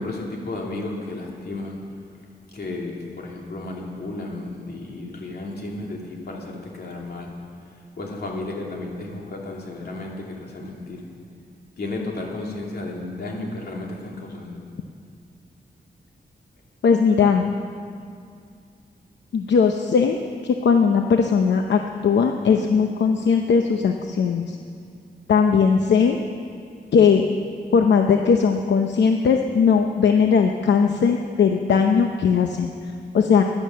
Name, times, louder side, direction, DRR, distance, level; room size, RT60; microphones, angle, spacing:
voice 1, 0.0-1.8 2.5-7.3 8.0-11.0 11.8-14.6, left 2 dB, 60° left, -1 dB, 2.7 m, -33 dB
voice 2, 16.8-17.5 19.3-24.6 25.3-26.2 26.9-27.2 27.7-32.7 33.1-33.4, left 6 dB, 80° left, 4 dB, 0.8 m, -19 dB
16.0 x 11.0 x 7.5 m, 2.3 s
wide cardioid pair, 150°, 18 cm